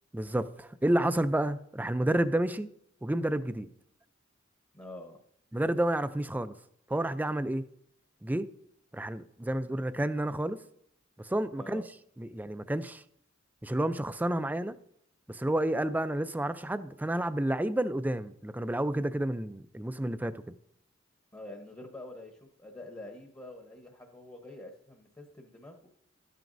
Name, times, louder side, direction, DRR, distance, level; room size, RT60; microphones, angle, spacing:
voice 1, 0.1-2.7 3.0-3.7 5.5-6.5 6.9-7.6 8.2-8.5 8.9-10.6 11.2-11.8 12.2-13.0 13.6-14.7 15.3-20.6, right 1 dB, 10° right, 0.4 m, -30 dB
voice 2, 4.7-5.2 11.6-11.8 21.3-25.8, left 1 dB, 15° left, 1.0 m, -46 dB
13.0 x 9.2 x 2.6 m
head